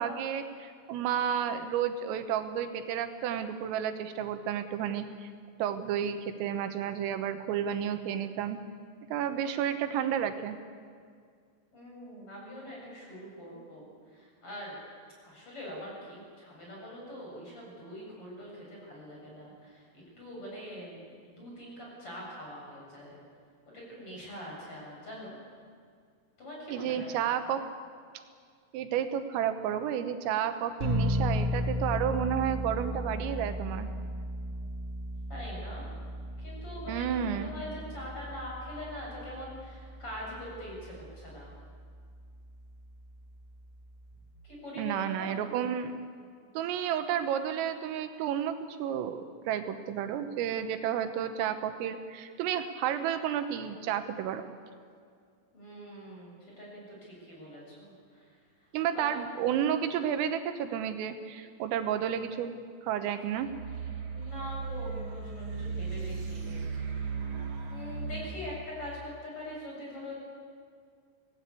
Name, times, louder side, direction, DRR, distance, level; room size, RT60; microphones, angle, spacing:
voice 1, 0.0-5.3 5.6-8.6 9.1-10.6 26.7-27.6 28.7-33.9 36.9-37.5 44.8-45.9 46.6-54.4 58.7-62.5 62.8-63.5, right 9 dB, 85° right, 8 dB, 3.8 m, -31 dB
voice 2, 11.7-14.7 15.2-23.2 23.7-25.4 26.4-27.3 35.3-35.9 36.4-41.5 44.4-45.4 55.5-58.4 58.9-59.2 64.1-67.3 67.7-70.1, equal, 25° left, -3 dB, 8.1 m, -43 dB
sound 1, 30.8-44.2, equal, 10° right, 5.1 m, -36 dB
sound 2, 63.4-68.4, right 5 dB, 50° right, 1.5 m, -36 dB
25.0 x 18.0 x 8.4 m, 2.1 s
omnidirectional pair, 5.8 m